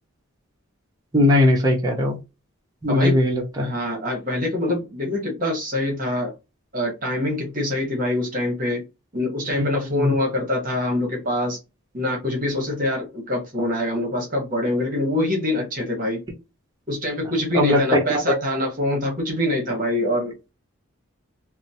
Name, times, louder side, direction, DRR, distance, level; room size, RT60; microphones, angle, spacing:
voice 1, 1.1-2.2 2.8-3.7 9.5-10.1 17.5-18.2, left 1 dB, 15° right, 0.7 m, -19 dB
voice 2, 3.6-6.3 6.7-8.8 9.1-11.6 11.9-16.2 16.9-20.3, left 1 dB, 40° right, 1.0 m, -24 dB
2.8 x 2.0 x 2.7 m
head